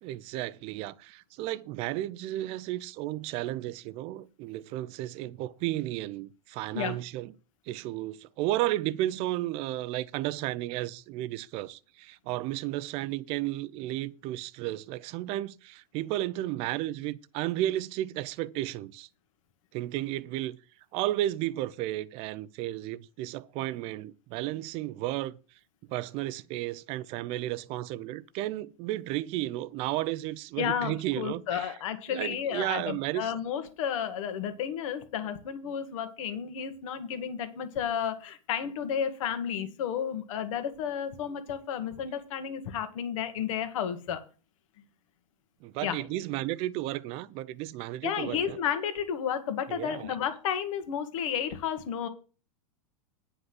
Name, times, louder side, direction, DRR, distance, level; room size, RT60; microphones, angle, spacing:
voice 1, 0.0-7.3 7.7-19.1 19.7-20.6 20.9-25.4 25.9-31.7 32.1-33.3 45.6-48.6 49.7-50.1, right 15 dB, 30° right, 0.5 m, -33 dB
voice 2, 30.6-44.2 45.8-46.0 48.0-52.1, left 8 dB, 60° left, 1.7 m, -32 dB
9.9 x 5.3 x 7.7 m
supercardioid pair, 150°, 19 cm